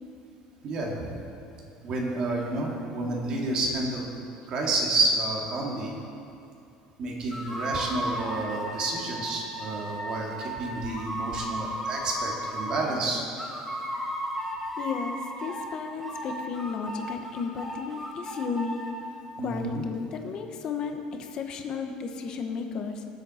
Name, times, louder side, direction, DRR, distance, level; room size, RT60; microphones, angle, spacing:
voice 1, 0.6-1.1 1.8-4.1 4.5-5.9 7.0-13.2 19.4-19.8, right 2 dB, 35° right, -1 dB, 2.0 m, -30 dB
sound 1, 7.3-13.0 13.4-15.7 16.0-18.9, right 1 dB, ahead, 1.6 m, -35 dB
voice 2, 14.8-18.9 19.4-23.0, left 5 dB, 35° left, 5 dB, 1.0 m, -34 dB
19.5 x 7.6 x 4.3 m, 2.6 s
cardioid pair, 175°, 2 cm